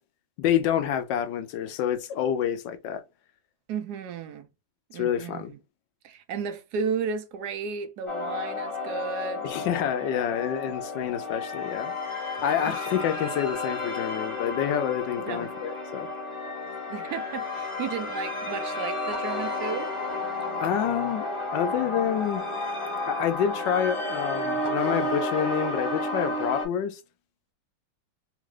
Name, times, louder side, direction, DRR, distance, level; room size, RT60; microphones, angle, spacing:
voice 1, 0.4-3.0 4.9-5.5 9.4-11.9 12.4-16.1 20.6-21.3 21.5-22.4 23.1-27.0, left 9 dB, 80° left, 1.2 m, -28 dB
voice 2, 3.7-4.5 4.9-5.5 6.0-9.6 12.7-12.8 15.2-15.5 16.9-19.9, right 6 dB, 70° right, 1.0 m, -33 dB
sound 1, 8.1-26.6, left 2 dB, 20° left, 1.0 m, -32 dB
3.6 x 2.4 x 3.1 m
omnidirectional pair, 2.0 m